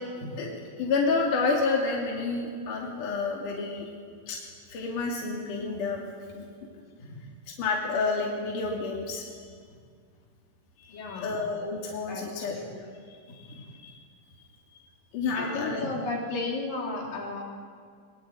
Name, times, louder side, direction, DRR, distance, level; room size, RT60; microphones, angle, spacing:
voice 1, 0.4-3.9 4.3-4.4 4.7-6.0 6.3-6.5 7.5-9.3 10.8-14.0 15.1-15.8, left 4 dB, 70° left, -2 dB, 4.0 m, -30 dB
voice 2, 10.9-11.3 12.1-12.9 13.3-13.7 15.3-17.4, left 2 dB, 85° left, -1 dB, 5.1 m, -34 dB
23.0 x 20.5 x 9.3 m, 2.1 s
omnidirectional pair, 3.8 m